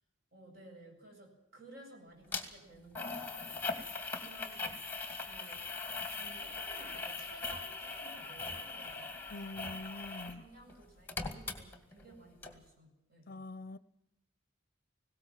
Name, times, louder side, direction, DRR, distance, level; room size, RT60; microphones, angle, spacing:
voice 1, 0.3-4.8 5.2-5.7 6.1-9.4 10.3-13.4, right 1 dB, 50° right, 7.7 m, -56 dB
sound 1, 2.3-2.4 3.0-10.4 10.7-12.1 12.4-12.5, left 3 dB, 10° left, 2.2 m, -40 dB
voice 2, 9.3-10.4 13.3-13.8, left 2 dB, 45° left, 0.7 m, -45 dB
19.5 x 17.5 x 7.6 m
head